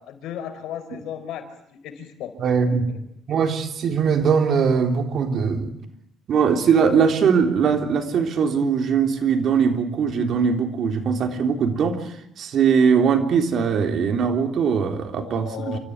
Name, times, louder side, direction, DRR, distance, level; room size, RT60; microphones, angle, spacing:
voice 1, 0.0-1.5 1.7-2.3 2.7-3.0 15.1-15.8, left 9 dB, 85° left, 7 dB, 4.6 m, -35 dB
voice 2, 2.4-2.9 3.3-5.7 6.3-15.8, right 6 dB, 60° right, 5 dB, 3.7 m, -21 dB
28.0 x 14.5 x 9.8 m, 0.73 s
cardioid pair, 110°, 0 cm